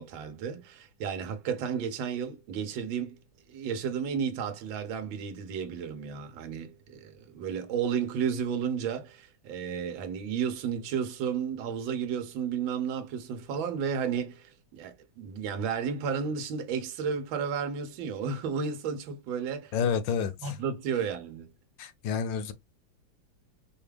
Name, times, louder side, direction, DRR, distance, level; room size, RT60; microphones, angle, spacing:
voice 1, 0.0-3.2 3.5-19.7 20.4-21.5, right 7 dB, 80° right, 1.5 m, -32 dB
voice 2, 19.7-20.6 21.8-22.5, left 6 dB, 75° left, 1.3 m, -29 dB
5.1 x 2.4 x 3.2 m
omnidirectional pair, 2.1 m